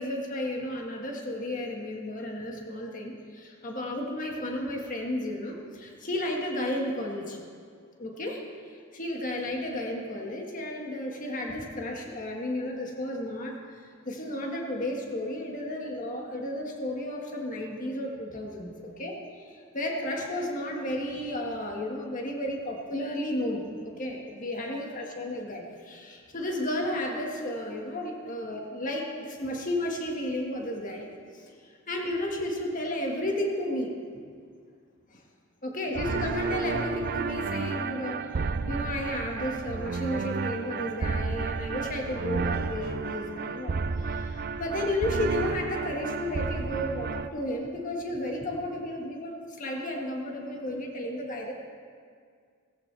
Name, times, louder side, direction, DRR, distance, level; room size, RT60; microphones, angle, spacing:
voice 1, 0.0-7.4 8.0-8.4 8.9-31.1 31.3-31.5 31.9-33.9 35.1-35.2 35.6-51.5, left 1 dB, 40° left, 0 dB, 1.7 m, -33 dB
sound 1, 36.0-47.3, right 4 dB, 45° right, 0.4 m, -32 dB
17.5 x 16.0 x 3.4 m, 2.1 s
head